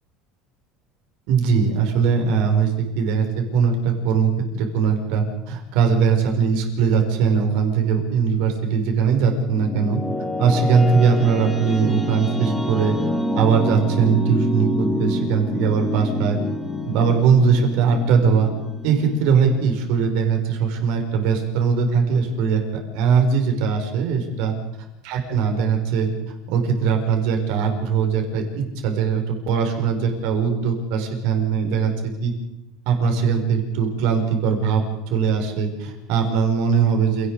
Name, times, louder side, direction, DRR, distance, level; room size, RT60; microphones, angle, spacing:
voice 1, 1.3-10.0 10.4-13.0 13.4-16.4 16.9-18.5 18.8-22.6 22.9-24.5 25.0-26.1 26.5-32.3 32.9-37.3, right 6 dB, 65° right, 3 dB, 5.4 m, -20 dB
sound 1, 9.5-20.1, left 1 dB, 10° left, 2.8 m, -27 dB
28.5 x 18.5 x 5.0 m, 0.94 s
cardioid pair, 150°, 0 cm